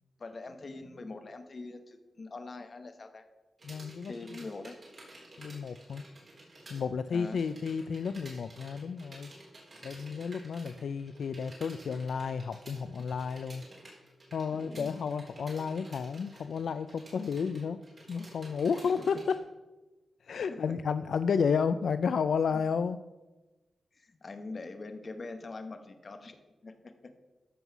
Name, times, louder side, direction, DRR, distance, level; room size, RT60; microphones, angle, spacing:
voice 1, 0.2-3.2 4.0-4.8 7.1-7.4 14.5-15.1 19.0-19.1 20.5-20.8 23.9-26.4 26.6-26.7 27.0-27.1, left 3 dB, 40° left, 7 dB, 1.1 m, -43 dB
voice 2, 3.6-4.1 5.4-6.0 6.7-9.3 9.8-13.6 14.3-17.8 18.1-19.4 20.2-23.0, left 6 dB, 75° left, 11 dB, 0.3 m, -32 dB
sound 1, 3.6-6.8 7.1-19.4, right 1 dB, 40° right, 4.2 m, -52 dB
14.0 x 5.5 x 6.0 m, 1.2 s
wide cardioid pair, 125°, 0 cm